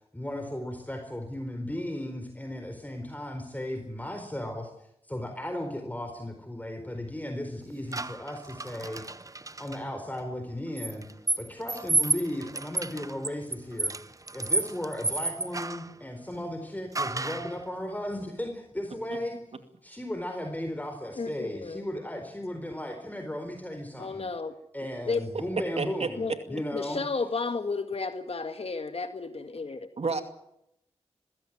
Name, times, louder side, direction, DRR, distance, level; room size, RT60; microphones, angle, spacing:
voice 1, 0.1-4.7 5.1-9.0 9.6-11.0 11.4-13.9 14.3-19.4 19.8-24.3 24.7-27.0, left 1 dB, 15° left, 5 dB, 4.2 m, -35 dB
sound 1, 7.9-9.8 10.8-15.9 16.9-17.6, right 3 dB, 30° right, 0.9 m, -31 dB
voice 2, 21.2-21.8 24.0-24.5 25.1-25.2 26.2-29.9, left 4 dB, 60° left, 8 dB, 1.8 m, -33 dB
voice 3, 25.8-26.4 30.0-30.2, right 4 dB, 65° right, 8 dB, 2.5 m, -31 dB
21.5 x 16.0 x 9.3 m, 0.78 s
cardioid pair, 45°, 11 cm